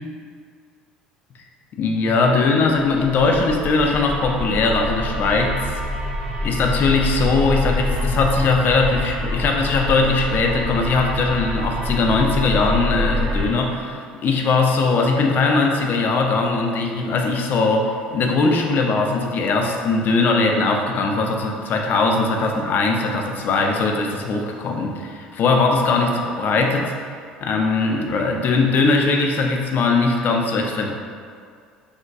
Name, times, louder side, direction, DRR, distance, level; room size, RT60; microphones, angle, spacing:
voice 1, 1.8-5.7 6.4-26.9 27.4-30.9, left 3 dB, 45° left, 2 dB, 0.4 m, -20 dB
sound 1, 3.0-13.5, left 1 dB, 30° right, 0.6 m, -26 dB
3.5 x 2.2 x 2.5 m, 2.1 s
hypercardioid pair, 60°, 4 cm